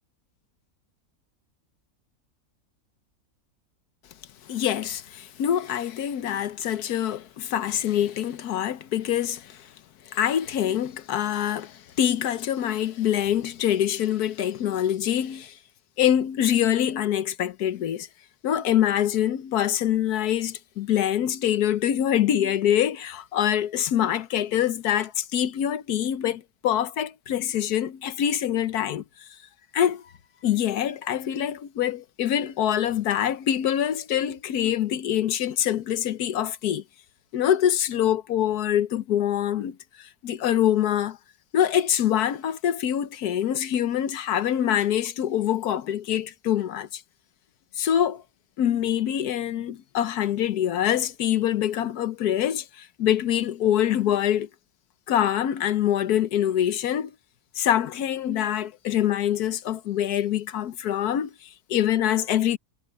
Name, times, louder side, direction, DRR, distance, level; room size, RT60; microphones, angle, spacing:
voice 1, 4.5-9.7 10.1-15.6 16.0-18.1 18.4-29.0 29.7-30.0 30.4-36.8 37.3-41.2 41.5-47.0 47.8-48.2 48.6-54.5 55.1-57.1 57.5-62.6, left 10 dB, 80° left, 1.4 m, -25 dB
omnidirectional pair, 1.7 m